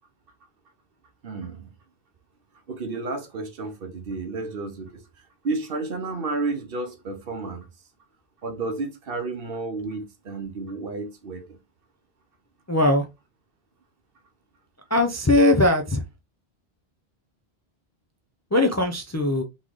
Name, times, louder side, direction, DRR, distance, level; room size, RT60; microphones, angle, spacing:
voice 1, 1.2-1.7 2.7-5.0 5.4-7.7 8.4-11.6, right 3 dB, 60° right, 1.1 m, -31 dB
voice 2, 12.7-13.1 14.9-16.0 18.5-19.4, left 1 dB, 25° left, 0.4 m, -20 dB
4.0 x 3.6 x 3.1 m
omnidirectional pair, 1.1 m